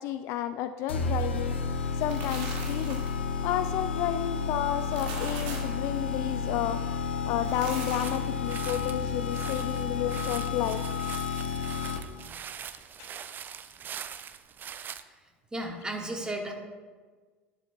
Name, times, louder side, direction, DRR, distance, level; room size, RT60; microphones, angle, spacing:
voice 1, 0.0-1.6 2.0-3.0 3.4-6.8 7.2-10.8 13.0-13.1, left 11 dB, 50° left, 11 dB, 0.4 m, -31 dB
sound 1, 0.9-12.3, left 5 dB, 75° left, 0.8 m, -31 dB
sound 2, 1.8-3.2 4.7-5.8 7.3-8.3, right 4 dB, 55° right, 2.1 m, -40 dB
sound 3, 8.0-15.0, right 8 dB, 30° right, 0.5 m, -43 dB
voice 2, 15.5-16.5, right 1 dB, 15° right, 2 dB, 1.7 m, -34 dB
11.0 x 11.0 x 2.3 m, 1.4 s
figure-of-eight pair, 70°, 6 cm